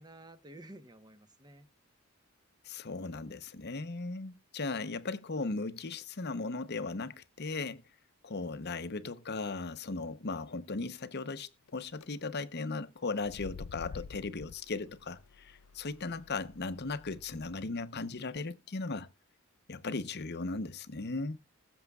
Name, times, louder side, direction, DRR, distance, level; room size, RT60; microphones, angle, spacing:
voice 1, 0.0-1.7 4.7-4.9 13.9-14.1 16.1-16.2, right 1 dB, 20° right, 1.1 m, -53 dB
voice 2, 2.6-7.8 8.2-19.1 19.7-21.4, left 3 dB, 50° left, 0.8 m, -37 dB
sound 1, 11.7-12.0 13.1-17.6, left 5 dB, 80° left, 0.4 m, -49 dB
20.5 x 7.1 x 2.3 m
head